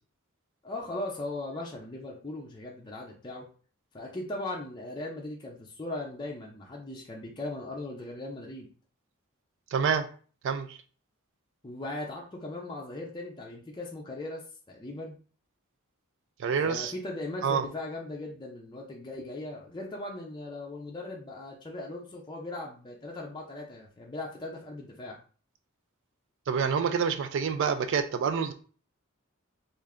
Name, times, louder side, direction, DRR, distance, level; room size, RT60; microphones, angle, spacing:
voice 1, 0.6-3.4 3.9-8.7 11.6-15.2 16.6-25.2, left 2 dB, 20° left, -2 dB, 0.5 m, -38 dB
voice 2, 9.7-10.1 10.4-10.8 16.4-16.9 17.4-17.6 26.5-28.5, right 6 dB, 60° right, 8 dB, 0.3 m, -27 dB
3.3 x 2.5 x 3.6 m, 0.41 s
head